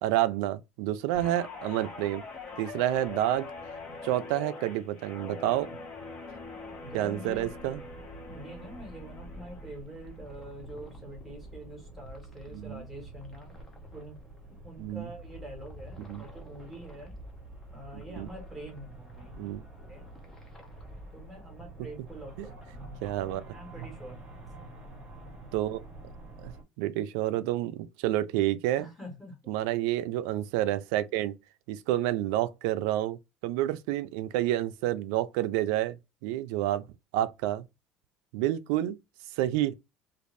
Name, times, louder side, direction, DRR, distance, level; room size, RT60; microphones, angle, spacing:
voice 1, 0.0-2.2 2.6-3.5 4.0-5.7 6.9-7.8 12.5-12.8 14.8-15.1 16.1-16.2 18.2-18.3 19.4-19.6 23.0-23.4 25.5-25.8 26.4-26.5 26.8-28.9 29.5-31.3 31.7-33.2 33.4-36.0 36.2-36.8 37.1-37.7 38.3-39.0 39.4-39.7, right 14 dB, 80° right, 0.4 m, -29 dB
Guitar, 1.1-9.7 10.1-10.4, left 3 dB, 30° left, 1.0 m, -43 dB
voice 2, 6.8-7.5 8.3-13.6 13.9-14.2 14.5-17.1 17.7-19.5 19.9-20.1 21.1-22.7 23.5-24.2 28.8-29.6, right 1 dB, 5° right, 1.2 m, -45 dB
sound 1, 7.2-26.6, right 2 dB, 20° right, 1.1 m, -48 dB
sound 2, 8.6-22.9, left 1 dB, 15° left, 0.7 m, -52 dB
2.6 x 2.5 x 3.1 m
cardioid pair, 170°, 3 cm